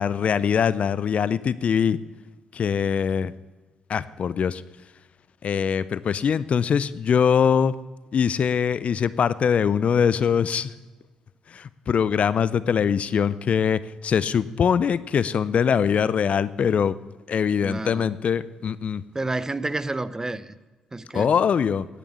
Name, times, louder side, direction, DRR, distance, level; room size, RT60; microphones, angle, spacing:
voice 1, 0.0-2.0 2.5-3.3 3.9-4.6 5.4-7.7 8.1-10.7 11.5-17.0 17.3-19.0 21.1-21.9, left 7 dB, 55° left, 0.5 m, -22 dB
voice 2, 17.6-18.1 19.1-20.5 20.9-21.3, right 2 dB, 20° right, 0.7 m, -29 dB
10.5 x 8.4 x 7.1 m
hypercardioid pair, 45°, 3 cm